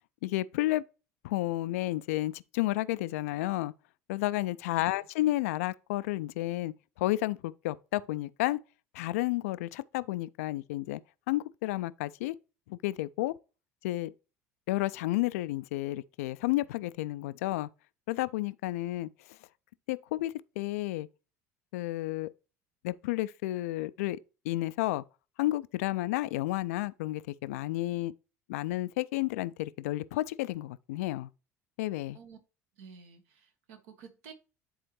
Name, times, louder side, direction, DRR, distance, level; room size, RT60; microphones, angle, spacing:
voice 1, 0.2-0.8 1.2-3.7 4.1-8.6 8.9-11.0 11.3-12.4 12.7-13.4 13.8-14.1 14.7-17.7 18.1-19.4 19.9-21.1 21.7-22.3 22.8-24.2 24.4-25.0 25.4-28.1 28.5-31.3 31.8-32.2, left 17 dB, 65° left, 0.3 m, -31 dB
voice 2, 32.8-34.3, right 6 dB, 65° right, 1.3 m, -51 dB
10.0 x 4.2 x 3.0 m
figure-of-eight pair, 65°, 8 cm